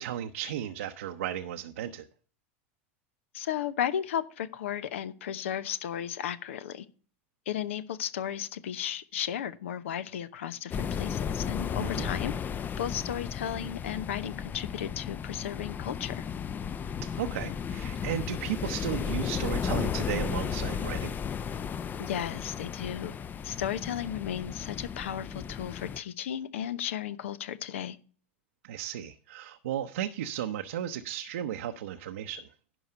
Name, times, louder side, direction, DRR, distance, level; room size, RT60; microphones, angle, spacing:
voice 1, 0.0-2.0 11.8-12.1 17.2-21.1 28.6-32.5, right 10 dB, 80° right, 0.8 m, -35 dB
voice 2, 3.3-6.9 7.5-12.3 12.8-16.2 22.0-23.1 23.4-28.0, left 10 dB, 85° left, 0.9 m, -34 dB
sound 1, 10.7-26.0, left 7 dB, 30° left, 0.5 m, -34 dB
11.0 x 4.8 x 6.6 m
hypercardioid pair, 105°, 7 cm